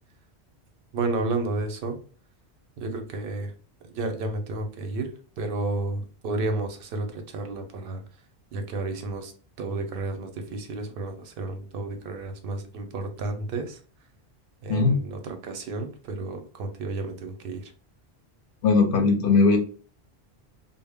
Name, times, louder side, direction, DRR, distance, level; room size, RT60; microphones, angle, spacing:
voice 1, 0.9-2.0 2.8-3.5 3.9-5.1 5.4-8.0 8.5-9.3 9.6-13.8 14.6-17.7, right 2 dB, 65° right, 6 dB, 0.7 m, -31 dB
voice 2, 18.6-19.6, left 4 dB, 60° left, 4 dB, 0.7 m, -19 dB
2.1 x 2.0 x 3.4 m, 0.38 s
omnidirectional pair, 1.1 m